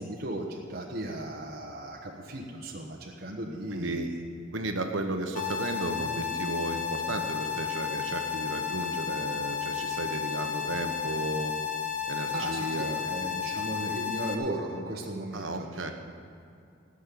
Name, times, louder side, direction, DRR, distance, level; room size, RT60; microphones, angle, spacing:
voice 1, 0.0-4.2 12.3-15.9, right 1 dB, 55° right, -1 dB, 1.3 m, -36 dB
voice 2, 3.7-4.1 4.5-11.5 12.1-13.0 15.3-15.9, right 2 dB, 75° right, 5 dB, 1.2 m, -34 dB
sound 1, 5.3-14.3, left 8 dB, 45° left, 1.4 m, -33 dB
17.0 x 6.5 x 8.5 m, 2.5 s
head